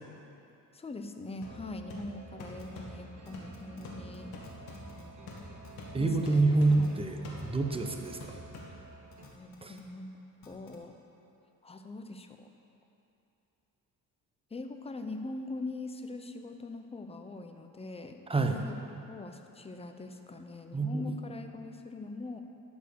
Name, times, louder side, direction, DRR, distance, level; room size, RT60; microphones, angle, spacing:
voice 1, 0.7-4.5 6.0-6.9 9.3-10.9 11.6-12.5 14.5-18.7 19.1-22.4, left 2 dB, 15° left, 6 dB, 0.6 m, -42 dB
sound 1, 1.4-9.1, left 1 dB, 85° left, 1.7 m, -47 dB
sound 2, 1.4-9.3, right 3 dB, 50° right, 1.8 m, -52 dB
sound 3, 2.6-2.7 3.3-3.8 4.1-4.2 4.4-5.0 5.3-5.8 6.2-6.3 6.7-6.9 7.4-7.5 8.0-8.2 8.6-8.7 9.1-9.8 10.4-10.8, left 7 dB, 65° left, 1.7 m, -55 dB
voice 2, 5.9-8.4 9.6-9.7 18.3-18.6 20.7-21.1, right 3 dB, 15° right, 4 dB, 0.8 m, -27 dB
12.0 x 4.5 x 6.9 m, 2.8 s
cardioid pair, 105°, 36 cm